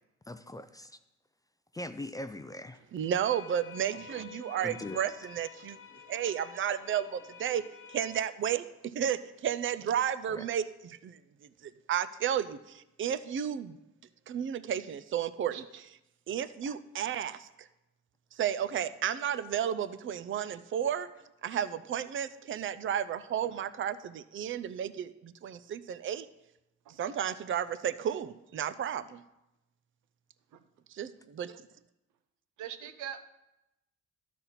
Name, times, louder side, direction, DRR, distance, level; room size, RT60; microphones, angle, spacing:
voice 1, 0.3-1.0 1.7-2.8 4.6-5.0 10.3-10.4 16.7-16.8, left 1 dB, 10° left, 10 dB, 0.4 m, -41 dB
voice 2, 2.9-5.8 6.1-11.2 11.6-13.8 14.3-15.6 16.3-17.7 18.3-21.1 21.4-26.3 27.0-29.2 30.9-31.5, right 9 dB, 45° right, 14 dB, 0.5 m, -33 dB
sound 1, 3.2-8.3, left 8 dB, 45° left, 1.0 m, -50 dB
voice 3, 32.6-33.2, right 9 dB, 80° right, 9 dB, 0.8 m, -42 dB
12.5 x 4.2 x 5.7 m, 0.93 s
cardioid pair, 90°, 30 cm